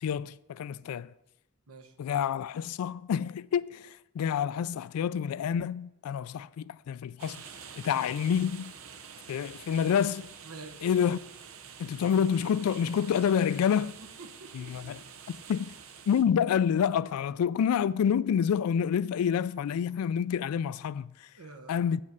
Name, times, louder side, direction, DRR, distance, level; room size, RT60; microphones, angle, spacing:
voice 1, 0.0-1.1 2.0-7.4 7.8-8.7 9.3-10.3 10.8-11.2 11.8-13.9 14.5-15.0 15.3-15.7 16.1-21.1 21.7-22.0, left 8 dB, 90° left, 0.3 m, -28 dB
sound 1, 7.2-16.2, right 7 dB, 65° right, 0.7 m, -48 dB
voice 2, 10.4-10.9 14.0-15.0 21.4-21.8, right 3 dB, 85° right, 1.1 m, -48 dB
8.6 x 5.3 x 7.2 m
head